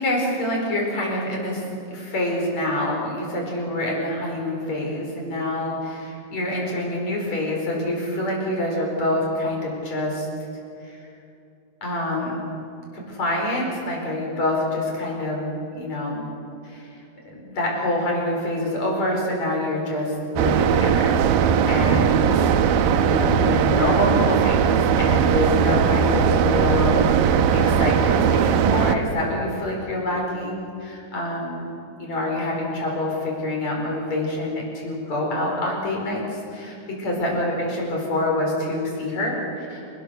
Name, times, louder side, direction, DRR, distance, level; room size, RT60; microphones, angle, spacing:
voice 1, 0.0-10.3 10.8-11.0 11.8-12.4 13.1-15.5 15.7-16.3 16.6-17.0 17.4-22.5 23.0-31.7 32.0-39.9, left 1 dB, 50° left, -1 dB, 6.2 m, -26 dB
sound 1, 20.4-29.0, right 7 dB, 90° right, 2.7 m, -19 dB
29.0 x 20.0 x 6.6 m, 2.6 s
omnidirectional pair, 3.9 m